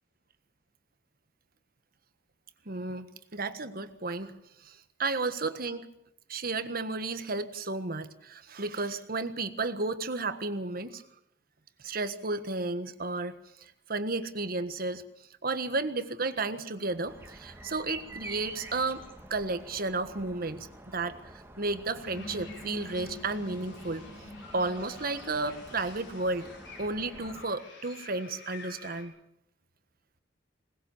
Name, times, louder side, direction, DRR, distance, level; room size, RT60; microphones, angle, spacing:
voice 1, 2.6-4.3 4.6-5.9 6.3-11.0 11.8-15.0 15.4-19.0 19.3-24.0 24.5-26.5 26.8-29.1, right 3 dB, 55° right, 10 dB, 1.5 m, -33 dB
sound 1, 17.0-27.4, right 1 dB, 15° right, 2.2 m, -48 dB
sound 2, 22.0-29.0, left 2 dB, 75° left, 6.9 m, -47 dB
21.0 x 20.0 x 7.2 m, 0.76 s
head